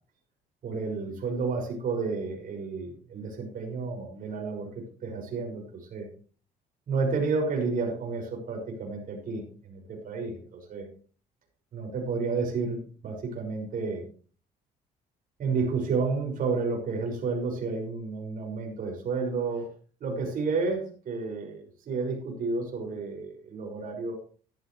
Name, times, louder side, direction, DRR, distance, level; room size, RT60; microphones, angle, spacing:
voice 1, 0.6-6.1 6.9-10.9 11.7-14.0 15.4-19.7 20.0-24.1, right 4 dB, 55° right, 1 dB, 6.4 m, -31 dB
15.0 x 12.0 x 3.3 m, 0.41 s
cardioid pair, 110°, 17 cm